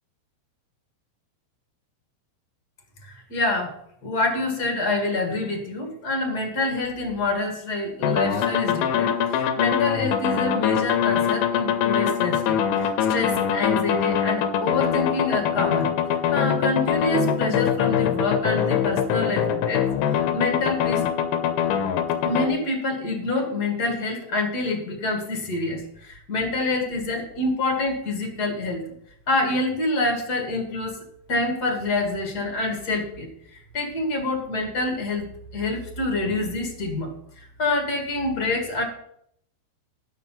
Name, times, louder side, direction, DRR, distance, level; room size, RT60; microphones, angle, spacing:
voice 1, 3.0-3.7 4.0-15.9 16.3-21.0 22.2-28.9 29.3-33.3 33.7-38.8, left 2 dB, 75° left, 3 dB, 0.9 m, -27 dB
sound 1, 8.0-22.5, left 8 dB, 90° left, 3.3 m, -23 dB
12.5 x 5.9 x 5.7 m, 0.70 s
omnidirectional pair, 5.3 m